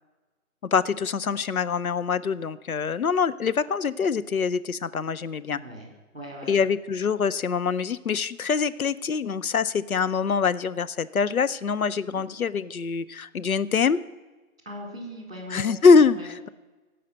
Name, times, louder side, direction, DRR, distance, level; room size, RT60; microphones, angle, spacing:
voice 1, 0.7-5.6 6.5-14.0 15.5-16.5, left 5 dB, 70° left, 15 dB, 0.6 m, -24 dB
voice 2, 5.5-5.9 6.1-6.6 12.1-12.2 14.6-15.6 16.1-16.3, equal, 40° right, 0 dB, 4.1 m, -39 dB
16.0 x 5.6 x 7.7 m, 1.2 s
figure-of-eight pair, 180°, 44 cm